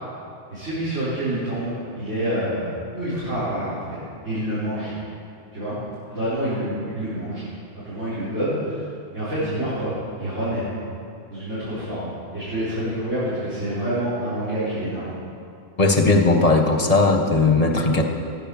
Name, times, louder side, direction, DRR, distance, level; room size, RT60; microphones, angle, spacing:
voice 1, 0.5-3.8 4.2-4.9 5.5-5.7 6.1-7.4 7.8-8.8 9.1-10.6 11.3-15.1, right 1 dB, 70° right, -13 dB, 4.9 m, -27 dB
voice 2, 15.8-18.0, left 3 dB, 30° left, 4 dB, 1.4 m, -18 dB
15.5 x 10.0 x 7.1 m, 2.5 s
omnidirectional pair, 1.3 m